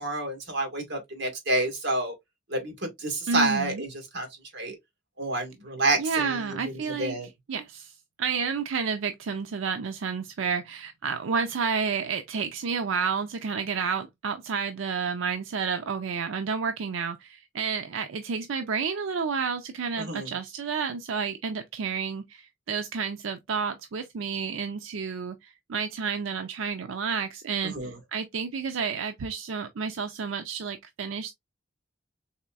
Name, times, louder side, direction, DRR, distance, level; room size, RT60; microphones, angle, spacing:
voice 1, 0.0-2.1 2.5-4.3 4.5-4.7 5.2-7.3 20.0-20.3 27.6-28.0, right 2 dB, 60° right, 1.7 m, -29 dB
voice 2, 3.3-3.8 6.0-7.2 7.5-31.3, right 5 dB, 90° right, 0.5 m, -30 dB
4.2 x 3.3 x 2.3 m
head